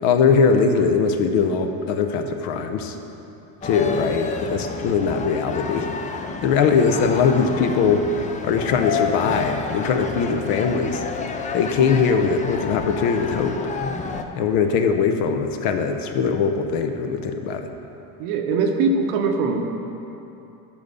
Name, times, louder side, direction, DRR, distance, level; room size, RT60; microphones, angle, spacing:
voice 1, 0.0-2.9 3.6-5.9 6.4-8.1 8.4-11.0 11.5-13.6 14.3-17.7, left 5 dB, 75° left, 6 dB, 0.9 m, -21 dB
sound 1, 3.6-14.2, left 5 dB, 20° left, 0.4 m, -30 dB
voice 2, 18.2-19.6, right 4 dB, 85° right, 3 dB, 1.1 m, -21 dB
12.0 x 4.1 x 6.9 m, 2.9 s
cardioid pair, 125°, 44 cm